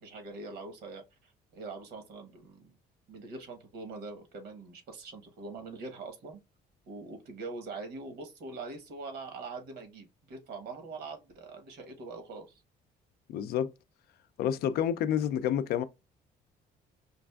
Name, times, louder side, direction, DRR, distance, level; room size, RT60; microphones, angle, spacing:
voice 1, 0.0-2.7 3.1-6.4 6.9-12.6, right 3 dB, 70° right, 1.1 m, -43 dB
voice 2, 13.3-13.7 14.4-15.8, left 9 dB, 70° left, 0.4 m, -29 dB
5.1 x 2.4 x 2.3 m
cardioid pair, 110°, 17 cm